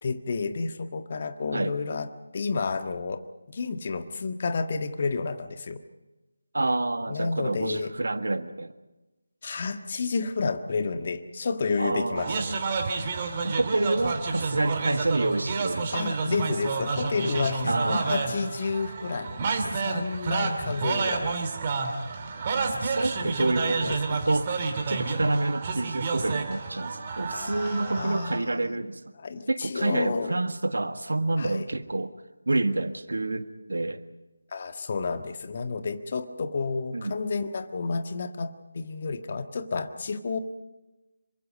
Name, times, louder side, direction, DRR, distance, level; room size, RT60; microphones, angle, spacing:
voice 1, 0.0-3.2 3.5-5.8 7.1-7.9 9.4-12.3 15.9-21.4 23.2-24.0 27.3-28.8 29.2-30.3 31.4-31.6 34.5-40.4, left 4 dB, 40° left, 8 dB, 1.6 m, -31 dB
voice 2, 6.5-8.7 11.8-12.6 13.4-16.1 17.7-18.4 22.5-24.5 24.9-29.0 29.5-32.1 32.5-34.0 36.9-37.2, right 2 dB, 65° right, 9 dB, 1.6 m, -28 dB
sound 1, 12.2-28.4, right 4 dB, 30° right, 2.6 m, -30 dB
26.5 x 24.0 x 5.3 m, 1.1 s
figure-of-eight pair, 160°, 0 cm